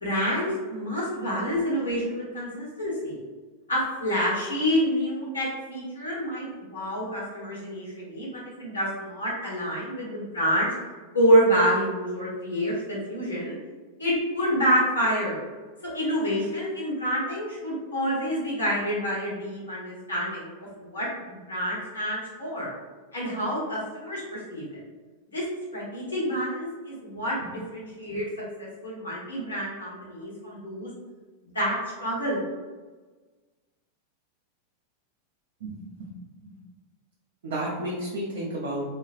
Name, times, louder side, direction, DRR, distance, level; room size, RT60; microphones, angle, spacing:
voice 1, 0.0-3.2 3.7-8.3 8.6-10.7 11.1-13.5 14.0-15.4 15.9-20.5 20.8-22.7 23.1-24.8 25.3-25.4 25.7-28.3 28.6-30.9 31.5-32.4, equal, 70° left, -6 dB, 1.0 m, -27 dB
voice 2, 35.6-36.1 36.4-36.5 37.4-38.9, right 1 dB, 60° right, -6 dB, 0.5 m, -32 dB
2.4 x 2.2 x 2.4 m, 1.3 s
figure-of-eight pair, 90°, 0 cm